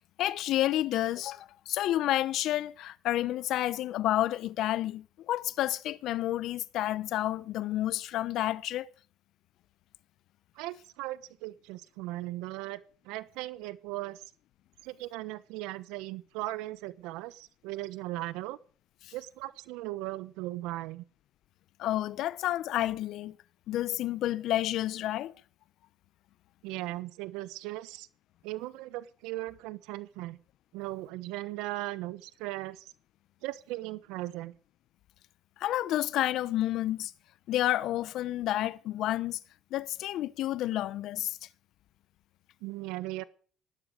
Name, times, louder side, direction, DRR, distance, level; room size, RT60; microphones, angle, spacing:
voice 1, 0.2-8.9 19.0-19.1 21.8-23.4 23.7-25.3 35.6-37.1 37.5-39.4 39.7-41.4, left 14 dB, 70° left, 0.9 m, -30 dB
voice 2, 10.6-12.8 13.0-14.2 14.8-18.6 19.1-21.0 26.6-28.1 28.4-30.4 30.7-32.9 33.4-34.5 42.6-43.2, right 17 dB, 90° right, 1.1 m, -38 dB
19.0 x 12.5 x 5.1 m
cardioid pair, 95°, 0 cm